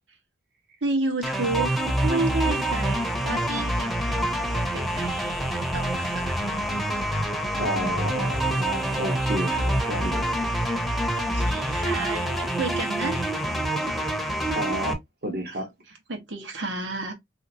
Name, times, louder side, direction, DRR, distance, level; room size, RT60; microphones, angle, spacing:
voice 1, 0.8-1.7 2.0-6.4 8.8-9.0 11.1-13.3 16.1-17.1, right 3 dB, 85° right, 1.2 m, -31 dB
sound 1, 1.2-14.9, right 1 dB, ahead, 0.6 m, -26 dB
voice 2, 7.6-10.4 14.5-15.7, equal, 55° right, 0.9 m, -31 dB
3.2 x 2.8 x 2.8 m
head